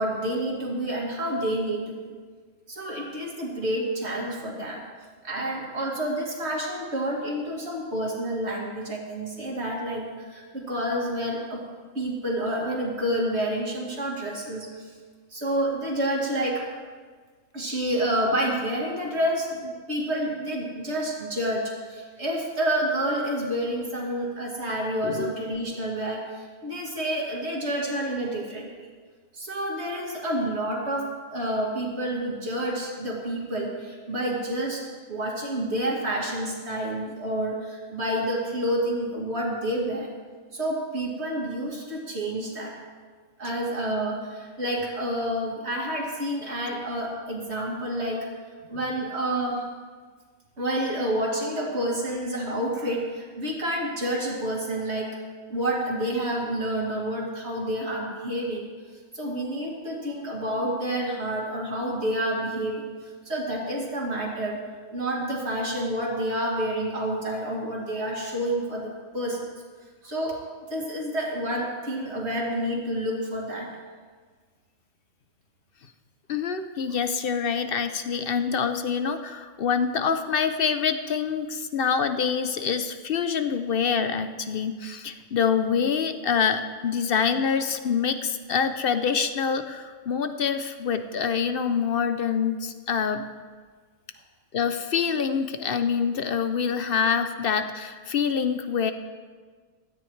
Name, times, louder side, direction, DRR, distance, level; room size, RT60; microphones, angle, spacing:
voice 1, 0.0-2.0 2.7-4.8 5.2-11.6 11.9-14.9 15.3-16.7 17.5-28.9 29.3-34.8 35.1-40.1 40.5-42.7 43.4-48.3 48.7-49.6 50.6-55.2 55.5-58.7 59.1-62.9 63.2-64.6 64.9-69.4 70.0-70.4 70.7-73.7, right 1 dB, 45° right, -2 dB, 2.7 m, -29 dB
voice 2, 76.3-93.2 94.5-98.9, left 6 dB, 55° left, 9 dB, 0.6 m, -26 dB
17.0 x 13.0 x 3.2 m, 1.5 s
omnidirectional pair, 1.5 m